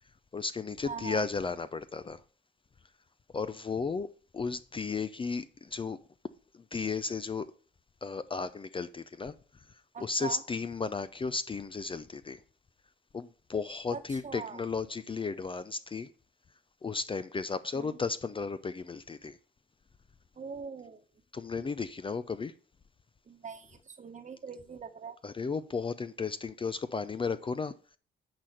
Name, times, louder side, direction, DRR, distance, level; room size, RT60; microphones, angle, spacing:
voice 1, 0.3-2.2 3.3-4.1 4.3-6.0 6.5-7.5 8.0-9.3 9.7-12.4 13.1-16.1 16.8-19.4 21.3-22.5 25.2-28.0, left 4 dB, 25° left, 0.5 m, -34 dB
voice 2, 0.8-1.2 9.9-10.4 13.9-14.6 17.7-17.9 20.4-21.0 23.3-25.1, right 6 dB, 35° right, 1.2 m, -42 dB
10.0 x 4.3 x 6.3 m
cardioid pair, 90°, 20 cm